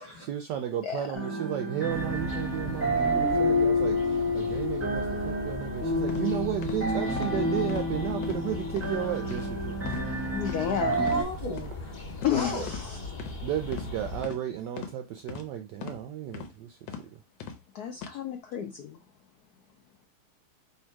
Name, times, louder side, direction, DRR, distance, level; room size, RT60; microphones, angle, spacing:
voice 1, 0.2-9.4 9.7-9.8 13.4-16.8, right 11 dB, 80° right, 1.0 m, -33 dB
sound 1, 1.1-11.2, left 1 dB, 10° right, 0.7 m, -29 dB
sound 2, 1.9-14.2, left 2 dB, 35° left, 1.0 m, -39 dB
sound 3, 6.1-6.2 6.6-6.8 7.2-7.3 7.7-7.9 8.2-8.4 8.8-8.9 9.3-9.5 9.9-10.1 10.4-10.6 11.0-11.2 11.6-11.7 12.2-12.4 12.7-12.8 13.2-13.3 13.7-13.9 14.2-14.4 14.8-14.9 15.3-15.4 15.8-16.0 16.3-16.5 16.9-17.0 17.4-17.6 18.0-18.1, left 7 dB, 70° left, 1.3 m, -39 dB
voice 2, 10.3-11.0 12.2-13.0 17.7-18.9, left 8 dB, 85° left, 0.8 m, -31 dB
voice 3, 10.9-12.7 12.9-13.1, left 1 dB, 15° left, 1.2 m, -37 dB
3.5 x 2.8 x 4.5 m
omnidirectional pair, 2.3 m